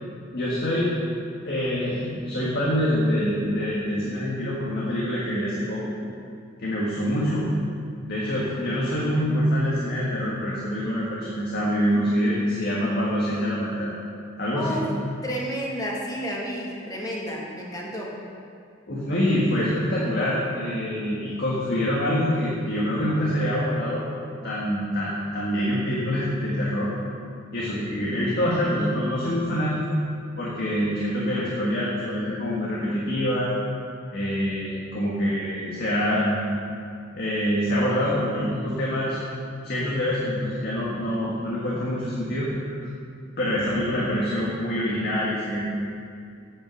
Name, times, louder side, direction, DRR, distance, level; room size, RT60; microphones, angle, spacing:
voice 1, 0.3-0.9 1.4-5.9 6.6-7.5 8.1-13.9 14.4-14.8 18.9-24.1 24.4-26.9 27.5-29.8 30.4-33.5 34.1-36.4 37.1-39.2 39.6-42.8 43.4-45.6, equal, 50° left, -6 dB, 1.8 m, -25 dB
voice 2, 14.5-14.8 15.2-18.1, equal, 20° left, -3 dB, 1.8 m, -31 dB
8.8 x 8.7 x 6.3 m, 2.4 s
head